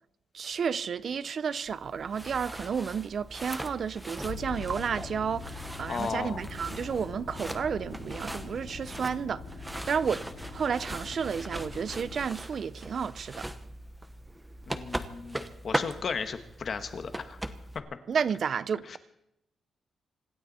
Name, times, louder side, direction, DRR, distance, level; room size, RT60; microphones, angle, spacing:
voice 1, 0.3-9.4 9.9-10.2 10.5-13.5 18.1-19.0, right 6 dB, 55° right, 0.6 m, -31 dB
sound 1, 1.7-17.8, right 1 dB, 10° right, 1.1 m, -40 dB
sound 2, 4.2-12.2, left 5 dB, 80° left, 5.6 m, -43 dB
voice 2, 5.9-6.4 14.7-17.4 17.7-17.8 18.8-19.0, left 5 dB, 50° left, 1.5 m, -35 dB
26.0 x 12.0 x 4.3 m
cardioid pair, 125°, 0 cm